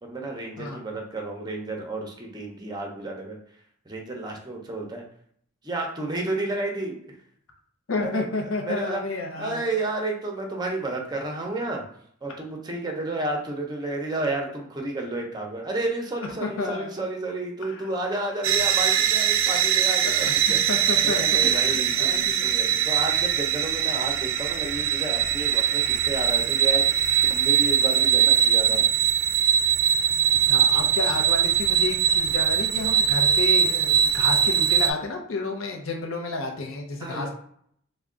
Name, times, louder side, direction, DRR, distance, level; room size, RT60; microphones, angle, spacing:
voice 1, 0.0-3.4 3.9-5.0 5.6-7.2 8.0-8.3 8.6-9.0 9.4-11.8 12.2-20.6 21.0-28.9 37.0-37.3, right 2 dB, 20° right, 1 dB, 0.6 m, -31 dB
voice 2, 7.9-9.6 16.4-16.9 17.6-17.9 20.0-22.5 30.3-37.3, left 3 dB, 80° left, 2 dB, 0.6 m, -31 dB
sound 1, 18.4-34.9, right 9 dB, 75° right, 0.3 m, -21 dB
3.4 x 2.1 x 3.7 m, 0.65 s
head